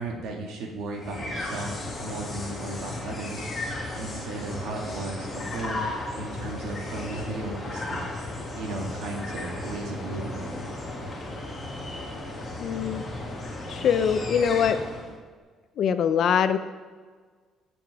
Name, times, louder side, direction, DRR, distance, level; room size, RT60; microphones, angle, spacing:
voice 1, 0.0-3.5 4.0-5.8 6.1-8.0 8.5-10.4, right 2 dB, 80° right, 0 dB, 2.0 m, -35 dB
sound 1, 0.9-15.2, left 2 dB, 20° left, 2.2 m, -35 dB
voice 2, 12.6-13.0 13.7-14.8 15.8-16.6, left 7 dB, 55° left, 11 dB, 0.5 m, -23 dB
15.0 x 7.0 x 3.5 m, 1.5 s
cardioid pair, 155°, 0 cm